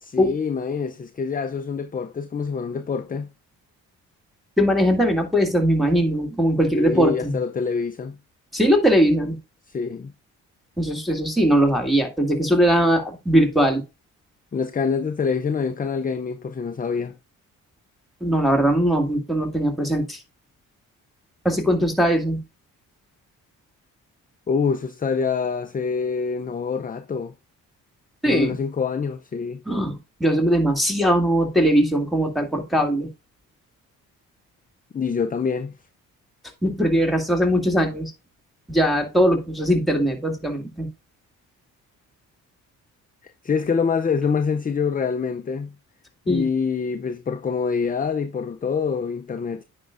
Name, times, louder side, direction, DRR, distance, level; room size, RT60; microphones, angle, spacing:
voice 1, 0.0-3.3 6.7-8.2 9.7-10.1 14.5-17.1 24.5-27.3 28.3-29.6 34.9-35.7 43.4-45.7 46.3-49.6, left 5 dB, 25° left, 0.5 m, -25 dB
voice 2, 4.6-7.4 8.5-9.4 10.8-13.8 18.2-20.2 21.4-22.4 28.2-28.6 29.7-33.1 36.6-38.1 38.7-40.9 46.3-46.5, equal, ahead, 2.0 m, -20 dB
9.3 x 5.1 x 2.5 m
supercardioid pair, 60°, 37 cm